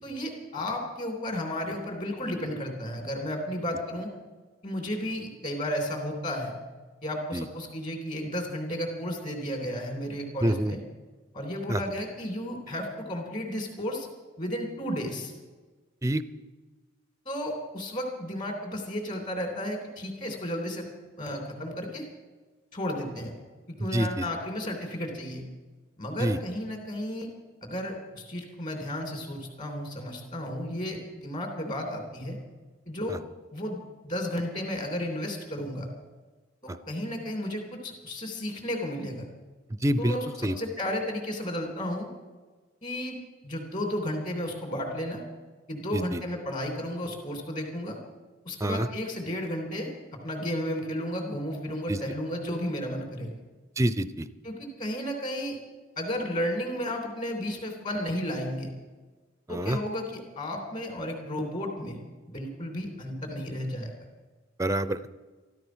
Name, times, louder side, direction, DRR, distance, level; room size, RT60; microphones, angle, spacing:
voice 1, 0.0-4.1 4.6-6.5 7.0-10.8 11.3-14.1 14.4-15.3 17.2-20.8 21.2-22.0 22.7-23.3 23.7-25.4 26.0-27.3 27.6-32.4 32.9-33.2 33.5-35.9 36.9-39.3 40.0-42.1 42.8-45.2 45.7-48.0 48.4-53.3 54.4-55.5 56.0-58.7 59.5-62.0 62.3-63.9, equal, 40° left, 1 dB, 3.2 m, -33 dB
voice 2, 10.4-10.7 11.7-11.8 16.0-16.2 23.9-24.3 26.2-26.4 33.1-33.2 36.7-36.8 39.8-40.2 40.4-40.6 45.9-46.2 48.6-48.9 51.9-52.0 53.8-54.3 59.5-59.8 64.6-65.1, right 1 dB, 15° right, 14 dB, 0.5 m, -26 dB
13.5 x 13.5 x 6.2 m, 1.3 s
head